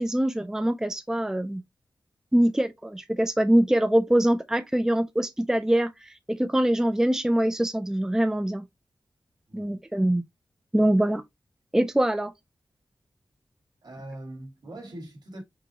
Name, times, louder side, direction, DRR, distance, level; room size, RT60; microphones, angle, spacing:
voice 1, 0.0-1.6 2.3-8.7 9.5-10.2 10.7-11.2 11.7-12.3, right 1 dB, 5° right, 0.4 m, -23 dB
voice 2, 9.5-9.8 13.8-15.4, right 1 dB, 65° right, 1.9 m, -41 dB
6.1 x 2.2 x 2.9 m
wide cardioid pair, 100°, 8 cm